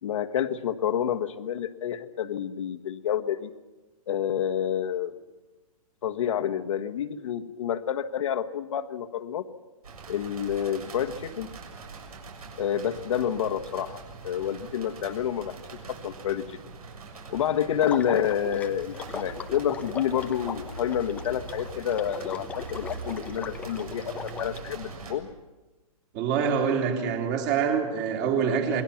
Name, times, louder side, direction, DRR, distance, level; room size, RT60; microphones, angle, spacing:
voice 1, 0.0-3.5 4.1-5.2 6.0-9.4 10.1-11.5 12.6-15.6 15.9-16.6 17.3-25.3, left 9 dB, 55° left, 7 dB, 1.5 m, -29 dB
sound 1, 9.8-25.2, right 4 dB, 75° right, 7.0 m, -42 dB
Water / Liquid, 17.8-24.6, left 6 dB, 10° left, 0.8 m, -39 dB
voice 2, 26.1-28.8, right 6 dB, 30° right, 2 dB, 3.6 m, -25 dB
28.0 x 22.0 x 5.9 m, 1.1 s
hypercardioid pair, 160°, 19 cm